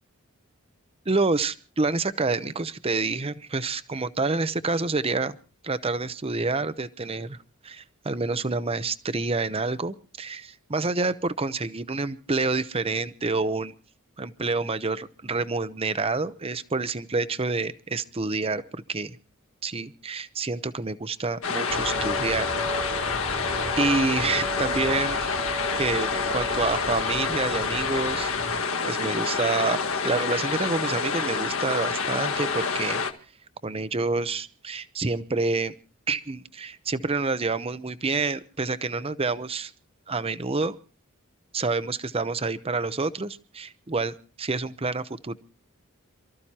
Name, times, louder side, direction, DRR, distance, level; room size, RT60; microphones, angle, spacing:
voice 1, 1.1-5.4 5.6-7.4 7.6-13.7 14.2-19.2 19.6-22.5 23.8-25.4 25.8-28.3 28.6-33.0 33.6-35.7 36.1-39.7 40.1-40.8 41.5-45.3, right 3 dB, 25° right, 13 dB, 0.7 m, -28 dB
sound 1, 21.4-33.1, left 5 dB, 70° left, 1.7 m, -28 dB
sound 2, 21.7-28.6, equal, 5° right, 1.1 m, -36 dB
28.5 x 14.0 x 2.9 m, 0.35 s
head